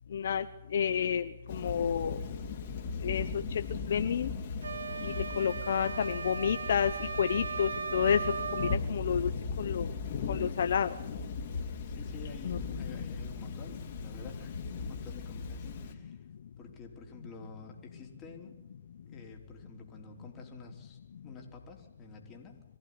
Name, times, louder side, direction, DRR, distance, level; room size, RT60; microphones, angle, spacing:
voice 1, 0.1-0.4 0.7-2.2 3.0-3.4 3.9-4.3 5.0-6.9 7.2-8.2 8.6-9.3 9.6-9.9 10.3-10.9 12.4-12.6, left 8 dB, 60° left, 9 dB, 0.9 m, -30 dB
Thunder / Rain, 1.5-15.9, left 4 dB, 45° left, 3.0 m, -38 dB
sound 1, 4.6-8.8, right 6 dB, 80° right, 0.7 m, -37 dB
voice 2, 11.8-16.2 16.6-18.6 19.1-22.6, left 3 dB, 20° left, 1 dB, 3.7 m, -50 dB
23.5 x 15.0 x 9.7 m, 0.94 s
hypercardioid pair, 135°, 0 cm